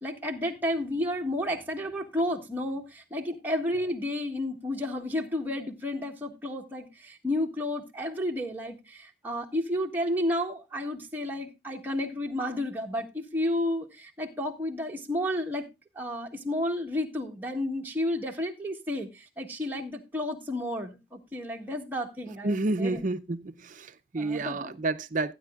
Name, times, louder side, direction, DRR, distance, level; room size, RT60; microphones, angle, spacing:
voice 1, 0.0-15.6 15.9-23.0 24.2-24.7, left 1 dB, 10° right, 1.5 m, -31 dB
voice 2, 22.4-25.3, right 2 dB, 45° right, 0.5 m, -30 dB
15.5 x 9.8 x 2.3 m
head